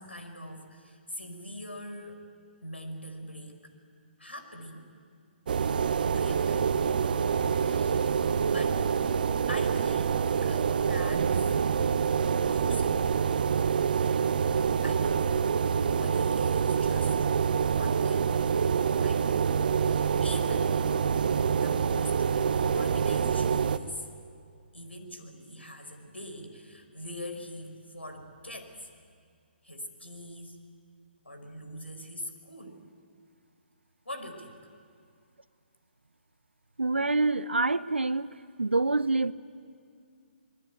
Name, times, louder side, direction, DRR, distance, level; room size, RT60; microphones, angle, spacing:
voice 1, 0.0-2.2 2.6-3.6 4.2-4.9 5.9-6.7 7.6-8.2 8.5-8.9 9.5-11.6 12.5-13.3 14.8-17.2 17.6-18.4 19.0-19.3 19.8-20.8 21.5-22.2 22.6-24.1 24.7-28.9 29.6-30.6 31.2-32.8 34.0-34.6, equal, 85° left, 6 dB, 4.8 m, -42 dB
sound 1, 5.5-23.8, right 6 dB, 50° right, 1.1 m, -26 dB
voice 2, 36.8-38.3 38.6-39.3, right 3 dB, 80° right, 16 dB, 0.8 m, -26 dB
25.5 x 21.5 x 9.4 m, 2.2 s
figure-of-eight pair, 135°, 6 cm